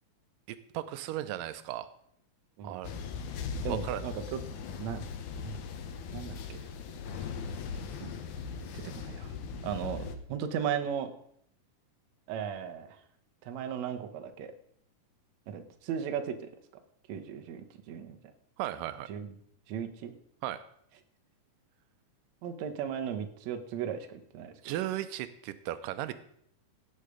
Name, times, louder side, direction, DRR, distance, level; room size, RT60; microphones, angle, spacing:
voice 1, 0.5-1.9 2.6-2.9 3.7-4.0 18.6-19.1 20.4-20.6 24.6-26.2, right 13 dB, 90° right, 13 dB, 2.3 m, -36 dB
sound 1, 2.8-10.2, left 6 dB, 70° left, 2.3 m, -39 dB
voice 2, 3.6-4.4 4.8-5.0 5.4-5.6 6.1-6.6 7.8-8.1 8.7-9.3 9.6-11.1 12.3-12.9 13.5-14.5 15.5-16.4 17.1-18.2 19.1-19.3 19.7-20.1 22.4-24.7, right 8 dB, 65° right, 7 dB, 2.1 m, -36 dB
16.5 x 6.7 x 5.0 m, 0.67 s
omnidirectional pair, 3.8 m